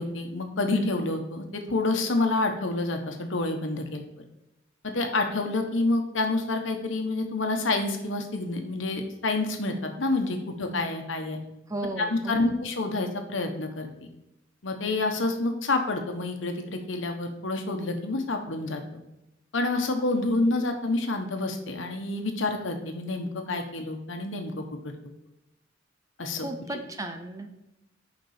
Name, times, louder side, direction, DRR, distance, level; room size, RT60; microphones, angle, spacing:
voice 1, 0.0-4.0 4.9-11.4 12.0-14.1 14.6-19.0 19.5-24.6 26.2-26.8, left 2 dB, 80° left, 4 dB, 1.1 m, -28 dB
voice 2, 11.7-12.5 26.4-27.5, right 2 dB, 15° right, 6 dB, 0.6 m, -34 dB
6.8 x 5.2 x 5.0 m, 0.90 s
head